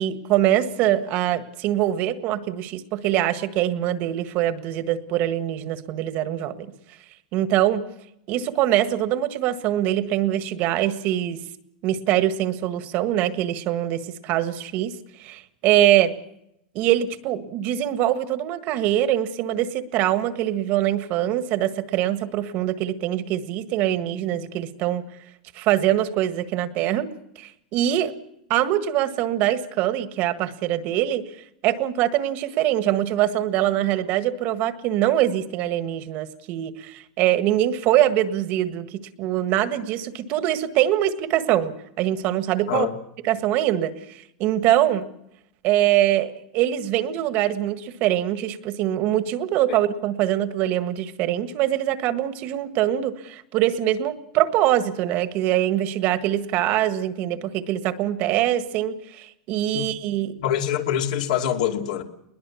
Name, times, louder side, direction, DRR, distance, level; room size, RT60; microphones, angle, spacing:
voice 1, 0.0-6.7 7.3-7.8 8.3-11.4 11.8-14.9 15.2-16.1 16.7-25.1 25.5-27.1 27.4-28.1 28.5-31.2 31.6-42.9 43.3-45.0 45.6-60.4, right 12 dB, 50° right, 10 dB, 1.6 m, -23 dB
voice 2, 60.4-62.0, left 10 dB, 85° left, 2 dB, 2.6 m, -24 dB
21.0 x 20.5 x 7.2 m, 0.80 s
supercardioid pair, 135°, 4 cm